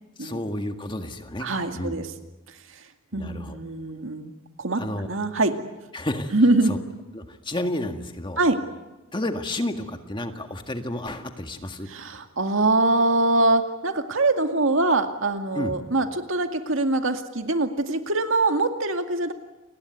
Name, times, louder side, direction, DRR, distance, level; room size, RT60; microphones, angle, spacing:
voice 1, 0.2-1.5 1.7-2.0 3.1-3.6 4.8-5.1 5.9-6.3 6.7-6.8 7.1-8.4 9.1-11.9 15.5-15.7, left 1 dB, 20° left, 6 dB, 1.8 m, -31 dB
voice 2, 1.4-2.1 2.7-2.8 3.1-5.5 6.3-6.8 8.4-8.6 11.9-19.3, right 2 dB, 65° right, 6 dB, 2.2 m, -23 dB
29.5 x 20.0 x 9.5 m, 1.1 s
head